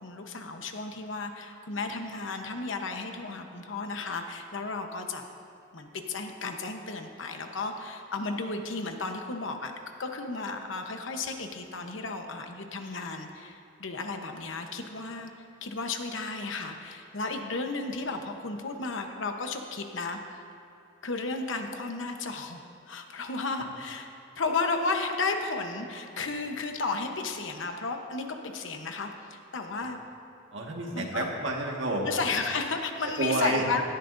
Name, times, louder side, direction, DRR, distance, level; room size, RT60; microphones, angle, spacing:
voice 1, 0.0-5.2 5.7-9.7 10.0-15.3 15.6-20.2 21.0-22.6 22.9-24.1 24.4-28.3 28.5-30.0 30.9-31.3 32.0-33.8, left 3 dB, 75° left, 5 dB, 1.0 m, -33 dB
voice 2, 30.5-32.1 33.2-33.6, right 2 dB, 70° right, -1 dB, 1.7 m, -29 dB
17.5 x 13.0 x 2.6 m, 2.8 s
head